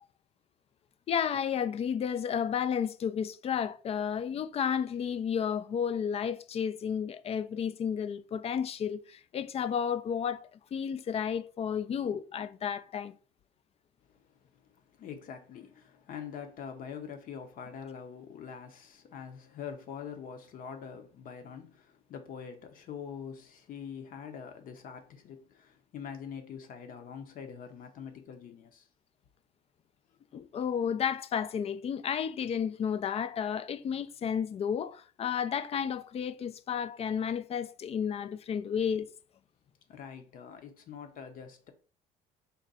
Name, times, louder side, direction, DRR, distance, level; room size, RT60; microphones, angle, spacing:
voice 1, 1.1-13.2 30.3-39.1, left 7 dB, 40° left, 0.4 m, -32 dB
voice 2, 14.6-28.9 39.9-41.7, left 7 dB, 60° left, 0.9 m, -44 dB
4.0 x 2.2 x 4.1 m
supercardioid pair, 75°, 16 cm